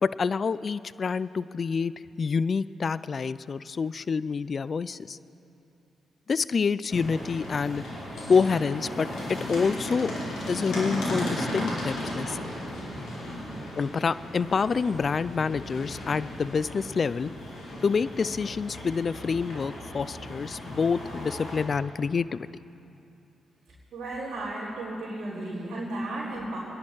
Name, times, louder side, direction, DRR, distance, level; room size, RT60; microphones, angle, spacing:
voice 1, 0.0-5.2 6.3-7.8 8.3-10.1 10.5-12.4 13.8-17.3 17.8-22.4, left 5 dB, 50° left, 17 dB, 0.4 m, -27 dB
sound 1, 6.9-21.6, left 1 dB, 75° left, 4.6 m, -36 dB
voice 2, 23.9-26.6, right 1 dB, 65° right, -8 dB, 3.9 m, -34 dB
26.0 x 11.0 x 4.6 m, 2.8 s
hypercardioid pair, 45°, 0 cm